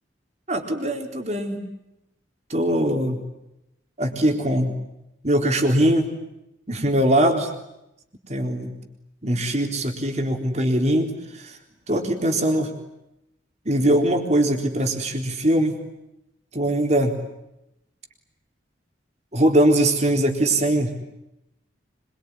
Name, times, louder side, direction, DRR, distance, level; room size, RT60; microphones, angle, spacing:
voice 1, 0.5-1.6 2.5-3.2 4.0-4.8 5.2-6.1 6.7-7.5 8.3-8.8 9.2-11.6 11.9-12.7 13.7-15.8 16.5-17.2 19.3-20.9, right 1 dB, 35° right, 3 dB, 4.0 m, -21 dB
25.5 x 23.5 x 9.9 m, 0.86 s
head